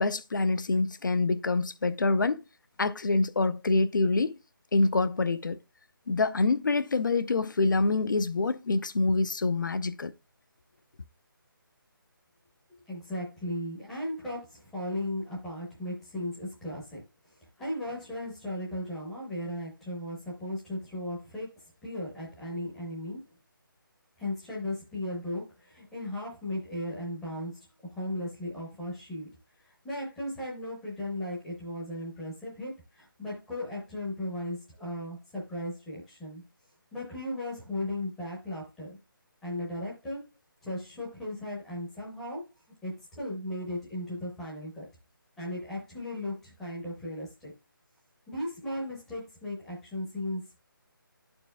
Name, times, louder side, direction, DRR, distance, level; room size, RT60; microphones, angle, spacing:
voice 1, 0.0-2.4 2.8-4.3 4.7-5.6 6.1-10.1, left 3 dB, 60° left, 0.6 m, -26 dB
voice 2, 12.9-23.2 24.2-36.4 36.9-39.0 39.4-40.2 40.6-42.4 42.8-44.9 45.4-47.5 48.3-50.6, left 1 dB, ahead, 0.7 m, -36 dB
12.5 x 4.4 x 2.2 m
hypercardioid pair, 180°, 12 cm